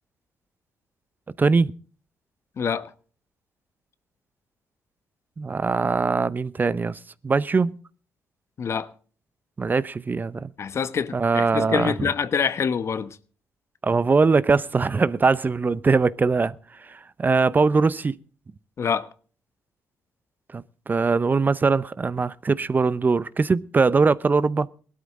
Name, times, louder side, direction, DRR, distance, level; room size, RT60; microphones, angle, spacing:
voice 1, 1.4-1.7 5.4-7.0 7.2-7.7 9.6-10.5 11.1-12.1 13.8-16.6 16.8-18.2 20.5-24.7, right 4 dB, 35° right, 0.7 m, -21 dB
voice 2, 2.6-2.9 8.6-8.9 10.6-13.2 18.8-19.1, left 6 dB, 55° left, 1.1 m, -26 dB
18.5 x 12.5 x 3.7 m
supercardioid pair, 55°, 6 cm